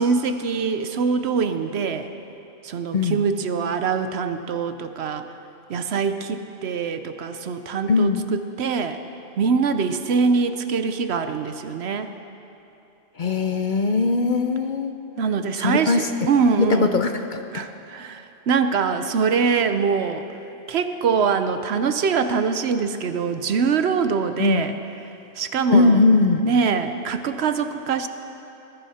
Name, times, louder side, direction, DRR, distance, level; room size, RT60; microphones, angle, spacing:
voice 1, 0.0-2.1 2.6-5.3 5.7-9.0 9.4-12.1 15.2-17.0 17.5-20.3 20.7-24.8 25.4-26.0 26.4-28.1, right 5 dB, 65° right, 9 dB, 0.9 m, -23 dB
voice 2, 7.9-8.2 13.2-14.9 15.5-16.1 16.6-17.6 24.4-24.6 25.7-26.5, left 3 dB, 50° left, 7 dB, 0.7 m, -20 dB
20.5 x 13.5 x 4.3 m, 2.8 s
omnidirectional pair, 1.2 m